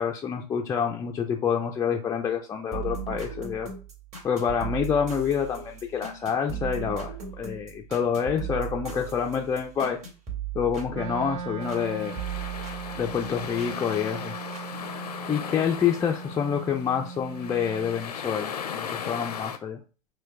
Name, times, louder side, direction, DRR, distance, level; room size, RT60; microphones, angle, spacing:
voice 1, 0.0-3.7 4.2-10.0 10.5-12.2 12.9-14.4 15.3-19.8, left 7 dB, 15° left, 0 dB, 0.4 m, -27 dB
sound 1, 2.7-11.9 12.2-13.7 14.5-14.6, right 8 dB, 35° right, 1.9 m, -37 dB
Wind instrument woodwind instrument, 10.9-18.1, right 5 dB, 55° right, 0.6 m, -39 dB
sound 2, 11.6-19.6, left 7 dB, 80° left, 0.6 m, -38 dB
4.3 x 2.2 x 4.5 m, 0.34 s
figure-of-eight pair, 95°, 20 cm